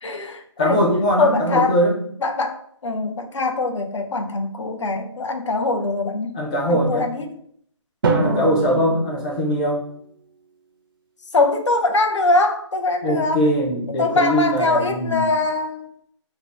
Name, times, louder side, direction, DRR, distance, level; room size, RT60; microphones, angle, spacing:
voice 1, 0.0-0.8 1.2-1.8 2.2-6.3 6.7-7.3 8.2-9.0 11.3-13.4 14.0-15.9, left 2 dB, 70° left, 5 dB, 0.5 m, -22 dB
voice 2, 0.6-2.0 6.3-7.1 8.1-9.8 13.0-15.3, equal, 15° left, -4 dB, 0.4 m, -21 dB
Drum, 8.0-10.1, right 4 dB, 45° right, 0.4 m, -26 dB
2.7 x 2.0 x 3.3 m, 0.64 s
hypercardioid pair, 160°, 16 cm